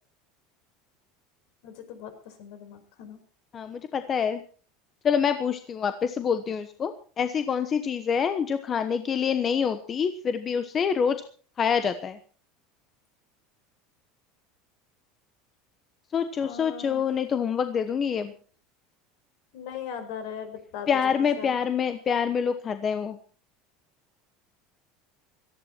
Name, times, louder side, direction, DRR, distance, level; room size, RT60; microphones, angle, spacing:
voice 1, 1.6-3.2 16.4-17.1 18.1-18.3 19.5-20.9 21.4-21.5, left 7 dB, 65° left, 9 dB, 4.9 m, -39 dB
voice 2, 3.5-4.4 5.0-11.2 11.6-12.2 16.1-18.3 20.9-23.2, left 7 dB, 25° left, 9 dB, 1.1 m, -26 dB
18.0 x 14.5 x 4.4 m, 0.40 s
cardioid pair, 160°, 0 cm